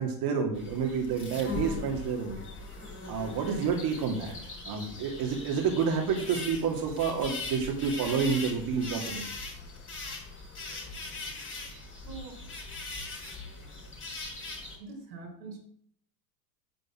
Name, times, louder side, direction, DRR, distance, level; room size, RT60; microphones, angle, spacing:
voice 1, 0.0-2.5 3.1-4.3 4.6-9.2, right 6 dB, 45° right, 1 dB, 2.5 m, -29 dB
sound 1, 0.6-14.8, left 3 dB, 25° left, 4.3 m, -40 dB
voice 2, 12.0-12.3 14.8-15.6, right 4 dB, 85° right, 0 dB, 3.4 m, -43 dB
9.2 x 5.2 x 7.4 m, 0.64 s
hypercardioid pair, 95°, 50 cm